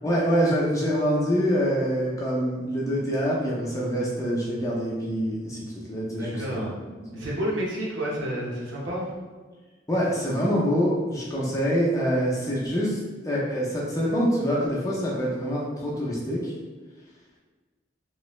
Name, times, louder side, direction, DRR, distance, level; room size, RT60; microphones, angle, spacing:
voice 1, 0.0-5.6 5.9-6.6 7.1-7.3 9.9-16.5, equal, 15° left, -5 dB, 0.6 m, -25 dB
voice 2, 6.1-6.7 7.1-9.1, equal, 90° right, -5 dB, 1.0 m, -30 dB
3.0 x 2.8 x 3.1 m, 1.3 s
head